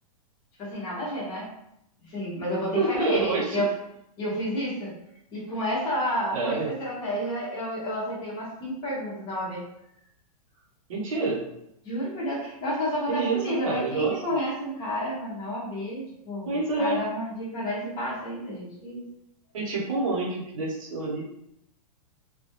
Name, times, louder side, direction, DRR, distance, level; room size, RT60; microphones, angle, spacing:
voice 1, 0.6-1.5 2.1-3.7 4.2-4.9 5.3-9.6 11.8-16.5 16.8-19.1, equal, 20° left, -7 dB, 0.6 m, -30 dB
voice 2, 2.7-3.6 6.3-6.7 10.9-11.4 13.1-13.4 13.6-14.1 16.5-17.0 19.5-21.2, right 3 dB, 55° right, -3 dB, 0.8 m, -27 dB
2.2 x 2.1 x 2.8 m, 0.78 s
supercardioid pair, 175°, 20 cm